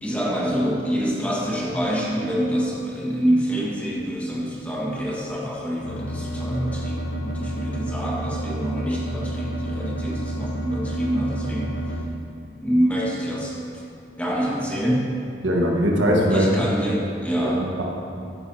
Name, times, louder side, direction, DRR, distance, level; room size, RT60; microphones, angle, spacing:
voice 1, 0.0-12.1 12.6-13.8 14.2-15.1 16.3-17.7, equal, 10° left, -5 dB, 1.6 m, -26 dB
sound 1, 5.8-12.1, equal, 70° left, 0.9 m, -30 dB
voice 2, 15.4-16.5 17.4-17.8, equal, 75° right, -2 dB, 1.5 m, -21 dB
14.0 x 10.5 x 2.8 m, 2.4 s
head